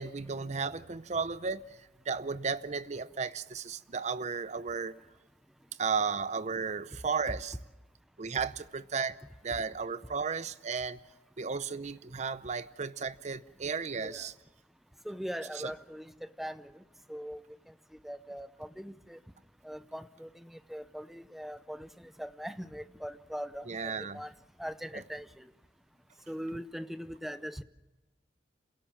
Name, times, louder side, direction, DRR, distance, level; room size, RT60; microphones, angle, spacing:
voice 1, 0.0-5.0 5.8-7.5 8.2-9.2 9.4-11.0 11.4-14.3 23.7-24.2, right 5 dB, 40° right, 0.7 m, -34 dB
voice 2, 13.9-14.3 15.0-16.1 16.4-16.8 17.1-17.4 17.7-17.8 18.0-19.2 19.6-24.3 24.6-25.5 26.3-27.6, equal, ahead, 0.6 m, -41 dB
27.5 x 17.0 x 7.4 m
head